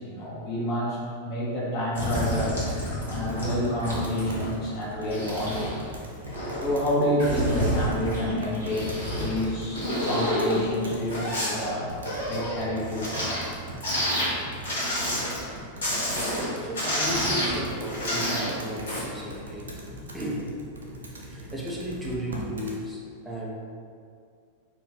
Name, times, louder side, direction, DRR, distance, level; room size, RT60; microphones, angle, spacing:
voice 1, 0.0-2.6 3.1-5.8 6.6-11.9 12.3-13.3, left 1 dB, 35° left, -5 dB, 0.7 m, -28 dB
sound 1, 1.9-3.6 3.8-4.5 4.9-6.8 7.2-9.4 9.7-13.4 13.8-14.3 14.6-15.5 15.8-16.5 16.7-18.5 18.8-19.0, equal, 65° left, 0.8 m, -29 dB
Computer keyboard, 3.1-22.8, right 1 dB, 70° right, 0.4 m, -42 dB
voice 2, 16.6-20.5 21.2-23.5, right 1 dB, 5° right, -5 dB, 0.4 m, -34 dB
2.4 x 2.2 x 3.4 m, 2.3 s
figure-of-eight pair, 90°, 0 cm